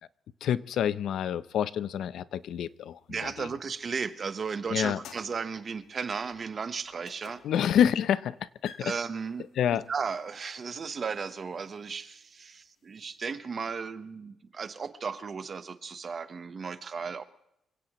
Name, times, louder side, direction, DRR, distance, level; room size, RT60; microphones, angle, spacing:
voice 1, 0.4-3.5 4.7-5.0 7.4-8.9 9.6-9.8, left 9 dB, 65° left, 16 dB, 0.6 m, -28 dB
sound 1, 2.5-4.4 4.8-13.3, left 8 dB, 85° left, 1.4 m, -55 dB
voice 2, 3.1-7.4 8.8-9.5 9.9-17.2, right 5 dB, 30° right, 11 dB, 1.0 m, -35 dB
27.5 x 17.0 x 3.0 m, 0.80 s
cardioid pair, 175°, 0 cm